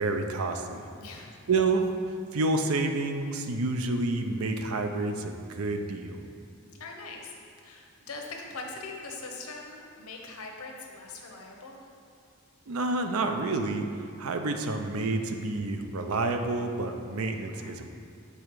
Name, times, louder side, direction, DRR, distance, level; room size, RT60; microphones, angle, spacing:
voice 1, 0.0-0.9 1.5-1.9 2.3-6.2 12.7-13.8 14.2-17.9, right 3 dB, 80° right, 5 dB, 0.6 m, -29 dB
voice 2, 1.0-1.3 6.8-7.3 7.6-11.8 15.1-15.2 17.5-17.8, left 3 dB, 90° left, 1 dB, 0.9 m, -42 dB
7.0 x 4.3 x 4.7 m, 2.4 s
head